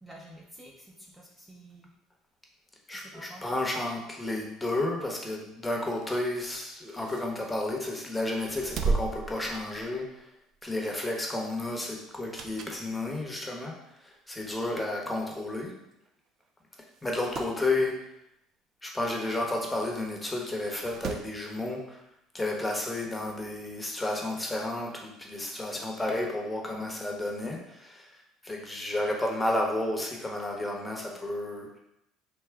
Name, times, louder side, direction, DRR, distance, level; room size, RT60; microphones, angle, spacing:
voice 1, 0.0-1.9 2.9-3.4, right 1 dB, 10° right, -3 dB, 0.7 m, -49 dB
voice 2, 2.9-10.3 10.6-13.8 14.0-15.7 17.0-18.0 18.8-22.0 22.3-31.7, left 2 dB, 10° left, 0 dB, 1.0 m, -32 dB
sound 1, 5.9-7.8 8.3-10.2 10.6-10.8 12.1-12.9 13.3-13.4 14.3-14.4 14.7-14.8 14.9-15.0 15.9-16.1 16.4-16.5 16.9-17.6 19.4-19.5 20.6-21.4 22.7-22.8, right 4 dB, 50° right, 0.5 m, -36 dB
3.5 x 2.9 x 4.5 m, 0.82 s
supercardioid pair, 100°, 0 cm